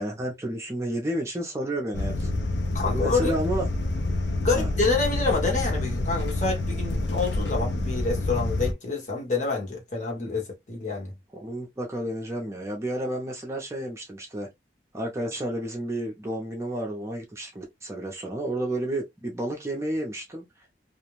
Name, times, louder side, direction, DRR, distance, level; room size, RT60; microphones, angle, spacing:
voice 1, 0.0-2.3 2.9-3.7 4.5-4.7 11.3-14.5 14.9-20.5, right 1 dB, 15° right, 0.5 m, -31 dB
sound 1, 1.9-8.7, left 2 dB, 80° left, 0.6 m, -27 dB
voice 2, 2.7-3.3 4.4-11.1, left 4 dB, 45° left, 1.1 m, -27 dB
2.5 x 2.2 x 3.0 m
head